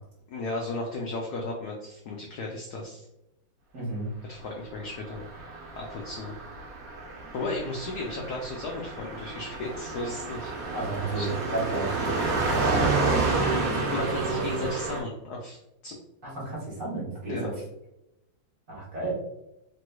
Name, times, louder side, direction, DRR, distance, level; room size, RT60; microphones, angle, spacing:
voice 1, 0.3-3.1 4.3-5.3 5.8-6.3 7.3-10.5 11.1-11.4 12.6-12.8 13.9-16.0 17.3-17.5, left 2 dB, 80° left, -1 dB, 0.8 m, -35 dB
voice 2, 3.7-4.1 10.7-11.3 11.5-12.6 12.9-14.7 16.2-17.5 18.7-19.3, right 3 dB, 45° right, -7 dB, 1.3 m, -33 dB
Car passing by, 5.1-15.0, right 3 dB, 60° right, 0.9 m, -30 dB
3.3 x 3.0 x 2.2 m, 0.88 s
omnidirectional pair, 2.2 m